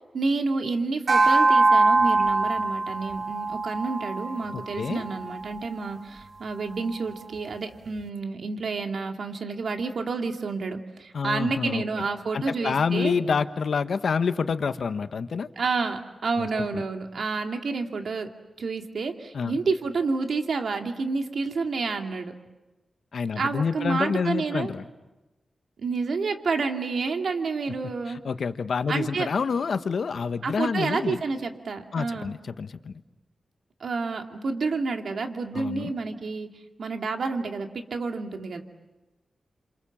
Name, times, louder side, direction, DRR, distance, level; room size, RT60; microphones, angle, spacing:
voice 1, 0.1-13.1 15.6-18.3 18.6-22.3 23.4-24.7 25.8-28.2 28.9-29.3 30.4-32.3 33.8-36.5 36.8-38.6, right 4 dB, 70° right, 4 dB, 2.4 m, -29 dB
sound 1, 1.1-5.7, right 3 dB, 55° right, 1.0 m, -23 dB
voice 2, 4.5-5.1 11.1-12.0 12.3-15.5 16.4-16.8 19.3-19.6 23.1-24.8 28.1-31.2 31.9-33.0 35.5-35.9, left 5 dB, 70° left, 10 dB, 1.2 m, -28 dB
28.0 x 26.0 x 7.3 m, 1.1 s
cardioid pair, 50°, 0 cm